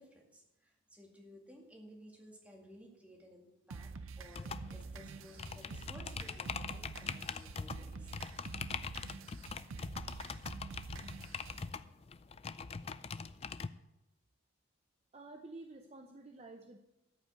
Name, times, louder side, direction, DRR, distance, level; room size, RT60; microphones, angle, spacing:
voice 1, 0.0-8.1, equal, 5° right, -1 dB, 2.0 m, -57 dB
sound 1, 3.7-11.7, right 4 dB, 80° right, 0.6 m, -47 dB
sound 2, 4.3-13.7, left 5 dB, 30° left, 0.3 m, -43 dB
voice 2, 15.1-16.8, right 2 dB, 30° right, 3 dB, 0.7 m, -50 dB
13.5 x 5.7 x 8.0 m, 0.94 s
head